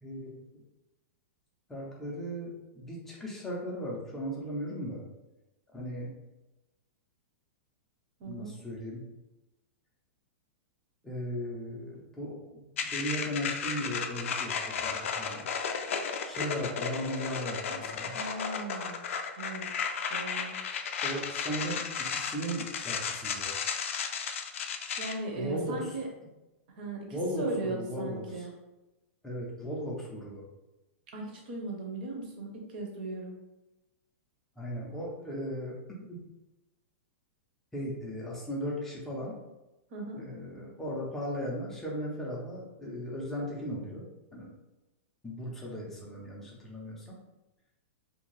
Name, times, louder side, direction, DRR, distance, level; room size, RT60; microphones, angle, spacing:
voice 1, 0.0-0.4 1.7-5.0 5.7-6.1 8.3-9.0 11.0-12.6 12.9-15.5 16.2-18.2 21.0-23.6 25.4-25.9 27.1-28.5 29.2-30.4 34.6-36.2 37.7-39.4 40.2-44.0 44.3-44.5 45.2-47.2, equal, 5° left, -4 dB, 0.4 m, -37 dB
voice 2, 8.2-8.5 18.1-19.0 19.4-19.7 20.1-20.5 25.0-26.1 26.8-28.5 31.1-33.3 39.9-40.2, right 2 dB, 45° right, 0 dB, 0.7 m, -37 dB
sound 1, 12.8-25.1, left 6 dB, 75° left, 0.3 m, -34 dB
2.5 x 2.2 x 3.1 m, 1.0 s
supercardioid pair, 175°, 7 cm